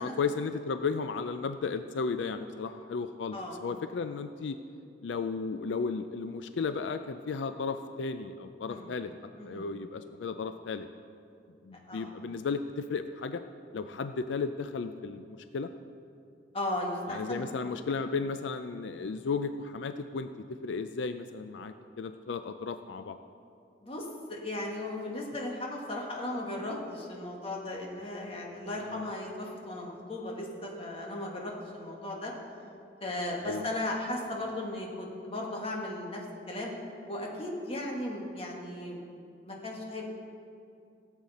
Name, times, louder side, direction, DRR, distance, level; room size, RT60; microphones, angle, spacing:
voice 1, 0.0-4.6 5.0-9.1 9.4-10.9 11.6-13.4 13.7-15.7 17.1-23.2 28.9-29.1 33.4-33.6, left 4 dB, 85° left, 9 dB, 0.4 m, -34 dB
voice 2, 9.4-9.7 11.9-12.1 16.5-17.5 23.8-32.3 33.0-36.2 36.5-36.7 37.1-39.0 39.4-40.0, left 1 dB, 35° left, -1 dB, 1.7 m, -36 dB
16.5 x 8.1 x 4.2 m, 2.5 s
head